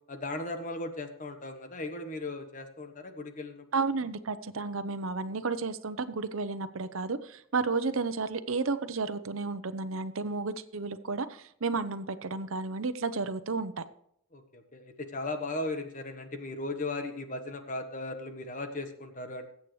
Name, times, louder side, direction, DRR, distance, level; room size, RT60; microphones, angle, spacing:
voice 1, 0.1-3.6 14.3-19.5, left 2 dB, 40° left, 7 dB, 1.2 m, -37 dB
voice 2, 3.7-13.8, right 4 dB, 80° right, 12 dB, 0.8 m, -32 dB
21.0 x 8.5 x 3.2 m, 0.71 s
head